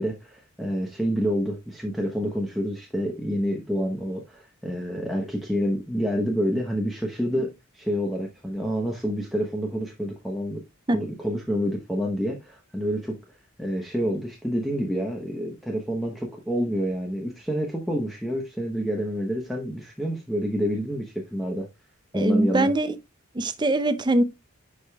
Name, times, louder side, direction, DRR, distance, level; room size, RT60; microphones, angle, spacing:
voice 1, 0.0-10.6 10.9-13.2 13.6-21.7 22.1-22.7, equal, ahead, 0.9 m, -28 dB
voice 2, 22.1-23.0 23.3-24.2, right 2 dB, 20° right, 0.5 m, -22 dB
10.5 x 4.9 x 2.3 m
head